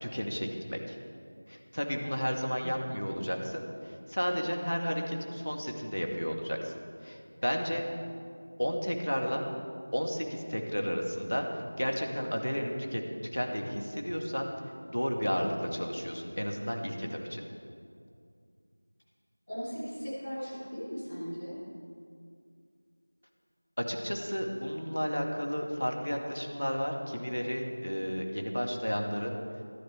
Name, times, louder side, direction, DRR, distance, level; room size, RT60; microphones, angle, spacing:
voice 1, 0.0-1.0 1.5-6.7 7.0-7.8 8.6-9.4 9.9-13.0 13.3-14.5 14.9-17.4 23.8-29.4, equal, 85° left, 2 dB, 1.9 m, -32 dB
voice 2, 2.6-2.9 19.5-21.6, equal, 25° left, -8 dB, 3.0 m, -38 dB
13.0 x 10.5 x 4.5 m, 2.3 s
figure-of-eight pair, 180°, 0 cm